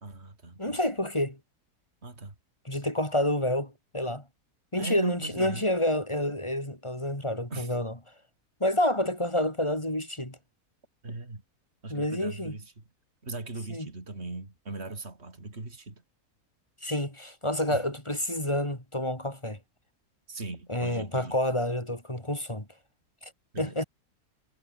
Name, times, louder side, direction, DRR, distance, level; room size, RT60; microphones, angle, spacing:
voice 1, 0.0-0.8 2.0-2.4 4.8-5.7 7.5-7.8 11.0-11.4 11.8-12.8 13.2-16.0 17.7-17.8 20.3-21.4 23.5-23.8, right 2 dB, 40° right, 4.3 m, -39 dB
voice 2, 0.6-1.4 2.6-4.2 4.7-7.9 8.6-10.4 11.9-12.5 13.7-13.9 16.8-19.6 20.7-22.7 23.2-23.3 23.6-23.8, left 1 dB, 15° left, 4.7 m, -29 dB
omnidirectional pair, 1.7 m